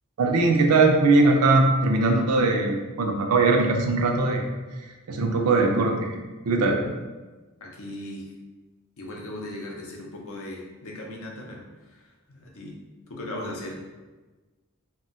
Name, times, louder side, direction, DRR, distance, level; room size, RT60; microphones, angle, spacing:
voice 1, 0.2-4.4 5.1-6.1 6.5-7.0, right 3 dB, 80° right, 3 dB, 0.4 m, -20 dB
voice 2, 7.6-8.3 9.0-12.8 13.1-13.8, left 1 dB, 65° left, -1 dB, 0.6 m, -38 dB
2.2 x 2.2 x 3.8 m, 1.2 s
head